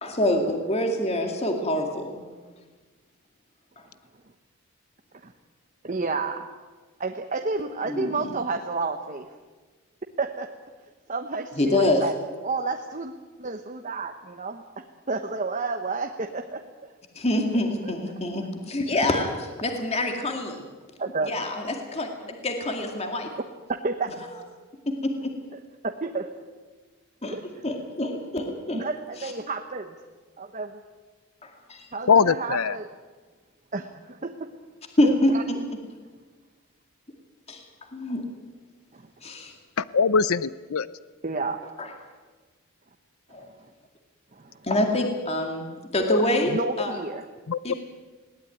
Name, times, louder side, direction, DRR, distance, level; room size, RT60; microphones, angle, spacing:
voice 1, 0.0-2.2 7.8-8.1 11.6-12.0 17.2-20.6 21.2-23.3 24.9-25.3 27.2-27.3 27.6-28.9 29.2-29.3 31.4-31.9 35.0-35.6 37.5-37.6 37.9-38.2 39.2-39.5 41.8-41.9 43.3-43.5 44.6-45.7 45.9-47.0 47.6-47.7, left 1 dB, 30° left, 3 dB, 2.2 m, -26 dB
voice 2, 5.8-6.5 7.0-9.3 10.2-10.5 11.1-12.1 12.4-13.1 13.4-14.6 15.1-16.6 17.8-17.9 21.0-21.3 23.8-24.1 25.8-26.3 27.2-27.4 28.7-29.9 30.4-30.8 31.9-32.9 33.7-34.5 35.0-35.4 38.9-39.1 41.2-41.6 44.3-44.5 46.5-47.2, right 3 dB, 35° right, 4 dB, 1.0 m, -30 dB
voice 3, 32.1-32.8 39.8-40.9 46.1-46.2 47.5-47.7, left 5 dB, 70° left, 17 dB, 0.6 m, -22 dB
20.5 x 18.0 x 9.3 m, 1.4 s
head